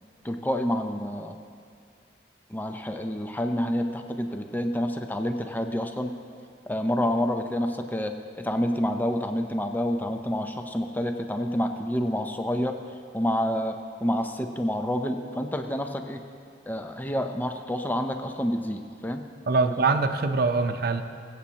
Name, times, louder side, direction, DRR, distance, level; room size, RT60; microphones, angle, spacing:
voice 1, 0.2-1.4 2.5-6.2 6.7-12.8 13.1-16.2 16.7-19.2, equal, 10° left, 5 dB, 0.5 m, -28 dB
voice 2, 19.5-21.0, right 3 dB, 60° right, 7 dB, 0.6 m, -23 dB
22.5 x 8.3 x 2.9 m, 2.3 s
head